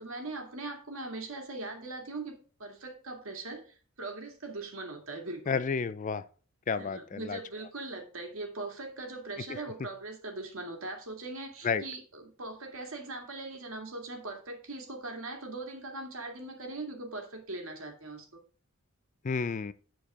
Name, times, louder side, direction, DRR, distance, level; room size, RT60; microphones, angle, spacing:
voice 1, 0.0-5.6 6.8-18.4, right 2 dB, 70° right, 2.2 m, -40 dB
voice 2, 5.5-6.2 6.7-7.4 11.6-11.8 19.2-19.7, left 5 dB, 35° left, 0.4 m, -31 dB
9.3 x 4.7 x 4.9 m
head